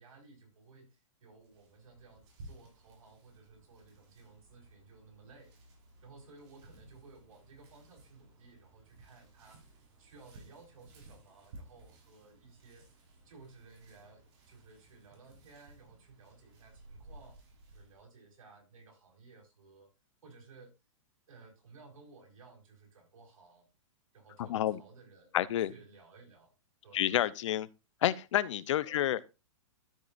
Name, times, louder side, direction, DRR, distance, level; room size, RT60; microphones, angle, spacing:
voice 1, 0.0-5.5 6.0-17.4 17.7-19.9 20.2-20.7 21.3-23.7 24.1-26.5 26.8-27.1 28.8-29.2, right 4 dB, 90° right, 5.0 m, -57 dB
sound 1, 1.4-18.0, right 2 dB, 55° right, 4.8 m, -57 dB
voice 2, 24.4-24.8 25.3-25.7 26.9-27.7 28.0-29.2, left 12 dB, 65° left, 0.7 m, -29 dB
13.0 x 7.7 x 2.5 m
hypercardioid pair, 160°, 17 cm